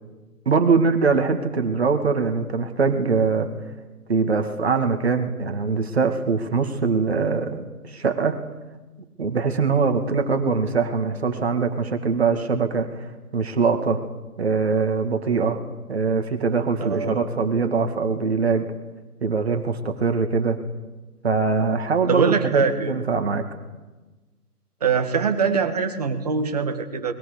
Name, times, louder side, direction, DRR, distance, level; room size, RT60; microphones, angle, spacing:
voice 1, 0.5-3.5 4.1-8.4 9.2-14.0 14.4-15.6 15.9-18.6 19.2-20.6 21.2-23.4, right 4 dB, 40° right, 5 dB, 2.3 m, -22 dB
voice 2, 16.8-17.3 22.1-23.0 24.8-27.1, right 5 dB, 25° right, 6 dB, 1.8 m, -23 dB
29.0 x 21.5 x 6.8 m, 1.2 s
figure-of-eight pair, 160°, 47 cm